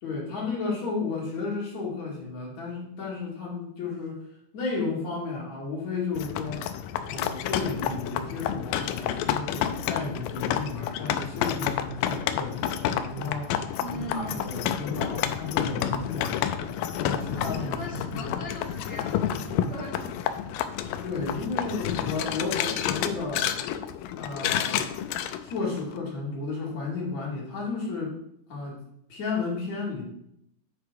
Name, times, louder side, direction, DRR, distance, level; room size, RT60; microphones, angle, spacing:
voice 1, 0.0-4.2 4.5-6.6 7.1-13.6 14.1-16.4 16.9-18.3 21.0-23.5 24.1-24.9 25.4-28.1 28.5-28.8 29.1-30.1, left 4 dB, 55° left, -4 dB, 3.4 m, -33 dB
sound 1, 6.2-26.0, left 10 dB, 85° left, 2.2 m, -30 dB
voice 2, 13.8-14.9 17.3-20.4, equal, 30° right, -5 dB, 1.0 m, -40 dB
9.9 x 4.9 x 4.7 m, 0.76 s
omnidirectional pair, 4.0 m